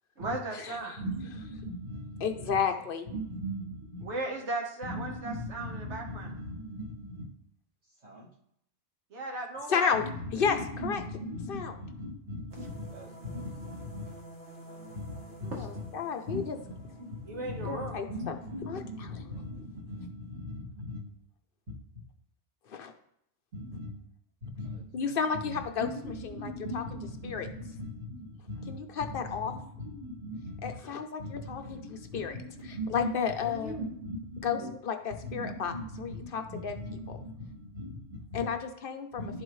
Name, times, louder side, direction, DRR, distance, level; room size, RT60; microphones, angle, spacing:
voice 1, 0.2-0.9 4.0-6.3 9.1-9.8 17.3-18.0 33.6-33.8 34.5-34.6 38.4-38.5, right 2 dB, 90° right, 0 dB, 1.5 m, -37 dB
voice 2, 1.0-4.0 4.8-7.2 8.0-8.3 9.9-14.0 14.7-21.0 23.5-23.9 24.4-28.7 29.1-30.7 31.2-34.7 35.2-38.4 39.2-39.4, equal, 70° right, -7 dB, 2.4 m, -39 dB
voice 3, 2.2-3.1 9.7-10.0 10.3-10.6 10.8-11.0 11.5-11.7 15.5-16.4 17.7-18.1 18.7-18.8 22.7-22.9 24.9-25.9 26.4-26.5 26.7-26.8 27.2-27.5 28.7-29.5 30.6-31.6 32.1-32.3 32.9-33.7 34.4-34.6 34.9-35.0 35.3-35.7 36.0-36.7 38.3-39.1, left 6 dB, 60° left, 7 dB, 0.8 m, -31 dB
sound 1, 12.5-19.5, right 1 dB, 50° right, 2.6 m, -51 dB
11.0 x 4.1 x 3.1 m, 0.73 s
omnidirectional pair, 1.2 m